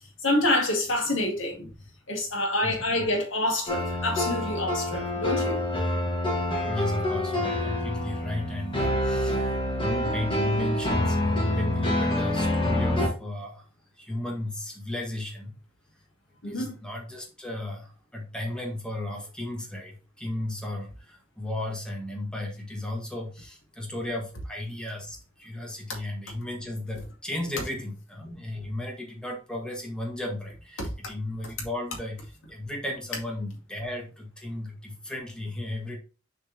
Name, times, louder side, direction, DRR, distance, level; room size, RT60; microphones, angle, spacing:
voice 1, 0.2-1.7 2.1-5.6 16.4-16.8 30.8-30.9, left 1 dB, 65° left, 2.1 m, -27 dB
voice 2, 2.6-3.1 6.6-13.6 14.0-15.5 16.5-36.0, left 1 dB, 5° left, 1.6 m, -34 dB
sound 1, 3.7-13.1, left 1 dB, 25° left, 2.0 m, -27 dB
6.7 x 4.2 x 4.0 m
head